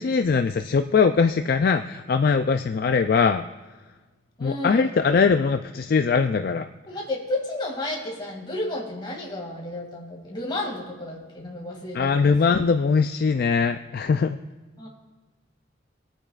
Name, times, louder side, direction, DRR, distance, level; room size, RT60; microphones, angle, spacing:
voice 1, 0.0-3.5 4.4-6.7 11.9-14.4, left 5 dB, 45° left, 8 dB, 0.3 m, -21 dB
voice 2, 4.4-4.9 6.9-12.5 14.8-14.9, left 1 dB, 20° left, -2 dB, 2.3 m, -32 dB
26.0 x 9.0 x 2.4 m, 1.3 s
head